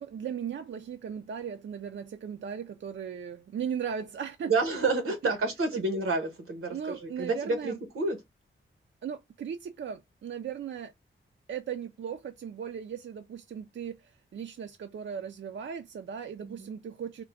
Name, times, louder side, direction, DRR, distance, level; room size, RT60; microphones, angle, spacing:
voice 1, 0.0-4.5 5.2-5.3 5.7-5.8 6.7-7.8 9.0-10.9 11.5-17.2, right 7 dB, 60° right, 0.4 m, -37 dB
voice 2, 4.5-8.2 16.4-16.7, right 3 dB, 90° right, 1.1 m, -29 dB
3.6 x 2.2 x 3.4 m
cardioid pair, 70°, 21 cm